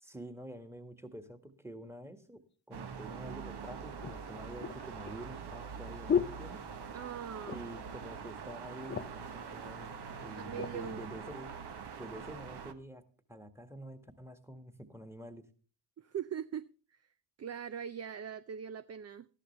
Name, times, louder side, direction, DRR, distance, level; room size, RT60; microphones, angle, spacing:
voice 1, 0.0-6.6 7.5-11.5 12.0-13.0 13.3-15.4, right 1 dB, 5° right, 1.8 m, -48 dB
sound 1, 2.7-12.7, right 6 dB, 55° right, 1.2 m, -44 dB
sound 2, 3.1-3.2 4.0-7.1 7.4-7.9 8.2-8.3 8.6-9.3 10.0-10.8 11.4-11.6, left 7 dB, 25° left, 0.6 m, -36 dB
voice 2, 6.9-7.6 10.4-11.1 16.0-17.0 17.4-19.3, right 8 dB, 35° right, 0.5 m, -41 dB
13.5 x 11.5 x 3.3 m
supercardioid pair, 45°, 48 cm